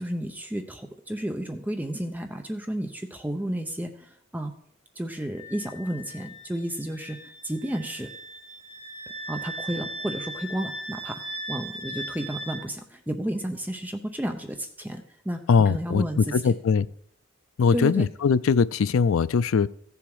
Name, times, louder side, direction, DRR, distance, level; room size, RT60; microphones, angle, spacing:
voice 1, 0.0-4.5 5.0-7.2 7.4-8.1 9.3-11.2 11.5-16.5 17.7-18.1, right 1 dB, 10° right, 5 dB, 0.6 m, -32 dB
Wind instrument woodwind instrument, 5.3-12.6, right 1 dB, 35° right, 3.2 m, -38 dB
voice 2, 15.5-16.9 17.6-19.7, left 5 dB, 75° left, 16 dB, 0.4 m, -21 dB
15.0 x 7.1 x 4.8 m, 0.67 s
head